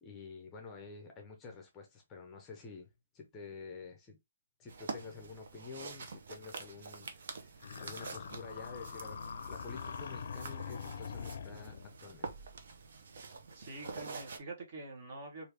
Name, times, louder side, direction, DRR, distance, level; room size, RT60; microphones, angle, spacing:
voice 1, 0.0-4.2 4.6-7.5 7.8-12.3, left 4 dB, 15° left, 0.6 m, -49 dB
sound 1, 4.7-14.4, right 4 dB, 65° right, 0.6 m, -47 dB
sound 2, 7.6-12.0, left 6 dB, 70° left, 0.4 m, -43 dB
voice 2, 13.5-15.5, right 2 dB, 40° right, 1.0 m, -46 dB
3.1 x 2.5 x 3.3 m
hypercardioid pair, 165°, 0 cm